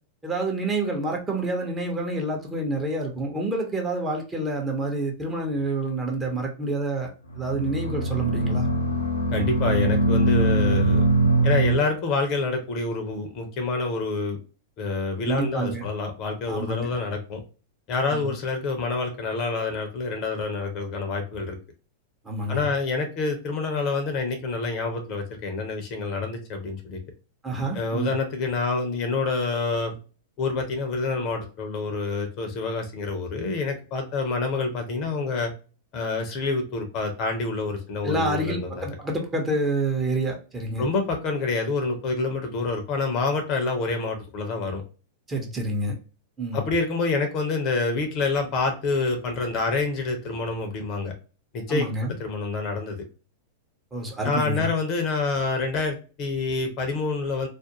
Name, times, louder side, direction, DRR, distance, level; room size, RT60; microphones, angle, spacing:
voice 1, 0.2-7.1 7.4-8.7 15.2-15.9 16.5-17.0 18.1-18.3 22.2-22.7 27.4-28.1 38.0-40.9 45.3-45.9 46.4-46.6 51.7-52.1 53.9-54.7, right 2 dB, 15° right, 0 dB, 0.9 m, -28 dB
sound 1, 7.3-11.8, right 1 dB, 90° left, 0.6 m, -22 dB
voice 2, 9.3-11.1 11.4-14.4 14.8-17.4 17.9-21.6 22.5-27.0 27.7-30.0 30.4-35.5 35.9-38.9 40.8-44.8 46.5-51.1 51.5-53.0 54.2-57.5, left 3 dB, 40° left, 5 dB, 0.7 m, -27 dB
2.5 x 2.1 x 2.8 m, 0.35 s
figure-of-eight pair, 95°, 0 cm